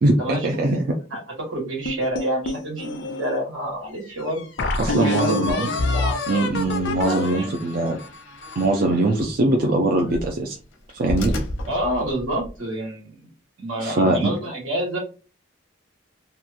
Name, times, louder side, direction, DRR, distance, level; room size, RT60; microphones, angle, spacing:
voice 1, 0.0-0.9 4.8-5.7 6.3-8.0 8.6-10.6 10.9-11.3 13.8-14.3, right 2 dB, 45° right, 2 dB, 0.4 m, -21 dB
voice 2, 1.5-4.4 4.9-6.2 6.9-8.0 11.7-13.3 13.6-15.0, right 1 dB, 80° right, -1 dB, 1.4 m, -28 dB
sound 1, 1.9-3.4 4.0-4.1 4.6-8.8, left 2 dB, 55° left, 0.4 m, -27 dB
sound 2, 3.7-12.6, left 1 dB, 85° left, 0.8 m, -36 dB
2.9 x 2.2 x 2.5 m, 0.33 s
head